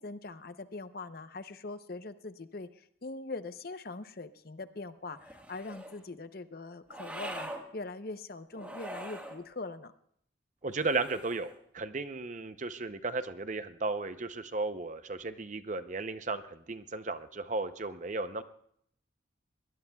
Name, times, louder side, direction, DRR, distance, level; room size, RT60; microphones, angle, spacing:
voice 1, 0.0-9.9, left 3 dB, 50° left, 11 dB, 0.7 m, -42 dB
sound 1, 5.2-6.0 6.9-7.6 8.5-9.4 10.7-11.6, right 1 dB, 10° right, 1.4 m, -43 dB
voice 2, 10.6-18.4, right 3 dB, 40° right, 11 dB, 0.6 m, -35 dB
22.5 x 18.5 x 2.3 m, 0.67 s
head